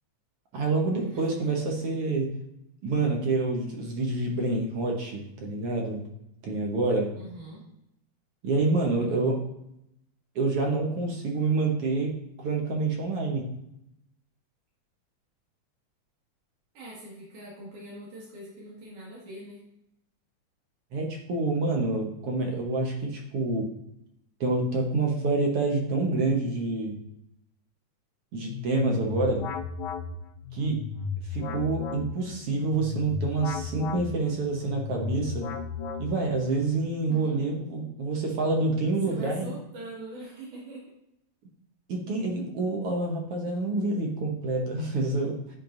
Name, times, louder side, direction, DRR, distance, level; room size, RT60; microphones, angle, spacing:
voice 1, 0.5-2.3 2.8-6.0 6.4-7.1 8.4-9.4 10.3-13.5 20.9-23.7 24.4-27.0 28.3-29.4 30.5-30.8 31.3-35.4 36.0-39.5 41.9-45.4, right 3 dB, 60° right, 0 dB, 1.7 m, -27 dB
voice 2, 7.2-7.6 16.7-19.6 37.1-37.4 39.1-40.8, right 1 dB, 80° right, -7 dB, 3.3 m, -42 dB
sound 1, 28.4-36.5, left 5 dB, 80° left, 1.8 m, -35 dB
10.5 x 4.6 x 2.6 m, 0.80 s
omnidirectional pair, 3.5 m